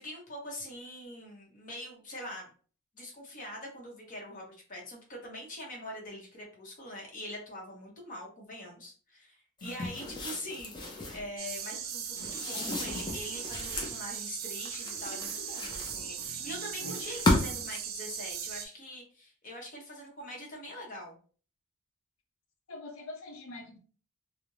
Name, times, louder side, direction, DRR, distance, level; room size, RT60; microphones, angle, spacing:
voice 1, 0.0-2.5 2.9-21.2, left 1 dB, 35° left, -1 dB, 0.8 m, -43 dB
sound 1, 9.6-11.3 12.2-14.0 14.7-16.3 16.9-17.7, left 2 dB, 20° left, 0.4 m, -33 dB
sound 2, 11.4-18.7, right 8 dB, 45° right, 0.3 m, -38 dB
voice 2, 16.2-17.0 22.7-23.8, left 1 dB, 65° left, 3 dB, 0.6 m, -44 dB
2.4 x 2.0 x 3.0 m, 0.41 s
head